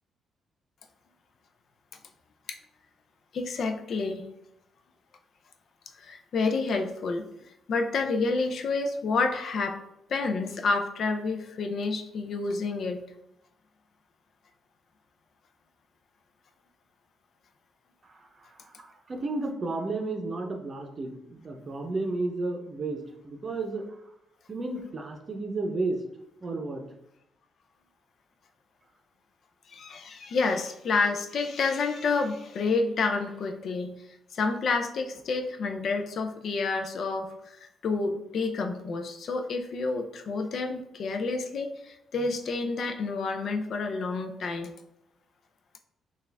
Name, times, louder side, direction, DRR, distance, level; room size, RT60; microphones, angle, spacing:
voice 1, 3.3-4.3 6.0-7.2 7.7-9.8 10.1-13.0 29.7-34.0 34.3-37.6 37.8-44.7, left 4 dB, 60° left, 6 dB, 0.4 m, -29 dB
voice 2, 18.0-24.0 24.5-26.0 26.4-26.8, right 2 dB, 35° right, 3 dB, 0.7 m, -33 dB
4.4 x 2.4 x 3.4 m, 0.84 s
cardioid pair, 90°, 0 cm